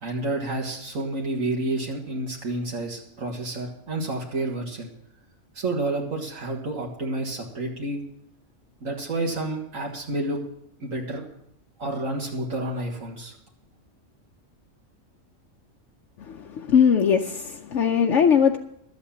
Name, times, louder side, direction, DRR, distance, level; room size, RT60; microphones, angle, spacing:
voice 1, 0.0-4.9 5.5-8.0 8.8-10.4 10.8-11.2 11.8-13.4, right 2 dB, 75° right, -1 dB, 2.2 m, -29 dB
voice 2, 16.3-18.6, left 7 dB, 65° left, 3 dB, 1.0 m, -20 dB
12.0 x 8.2 x 7.1 m, 0.75 s
omnidirectional pair, 1.4 m